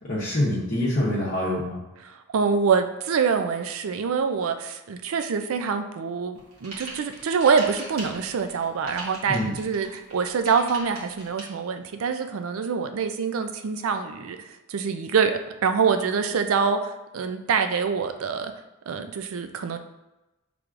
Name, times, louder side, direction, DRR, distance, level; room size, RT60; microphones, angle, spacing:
voice 1, 0.0-1.8 9.3-9.6, left 1 dB, 45° left, -8 dB, 0.8 m, -25 dB
voice 2, 2.0-18.5 18.9-19.8, right 5 dB, 70° right, 8 dB, 0.4 m, -25 dB
sound 1, 6.3-11.4, right 2 dB, 85° right, 1.6 m, -40 dB
6.1 x 3.4 x 2.5 m, 1.0 s
head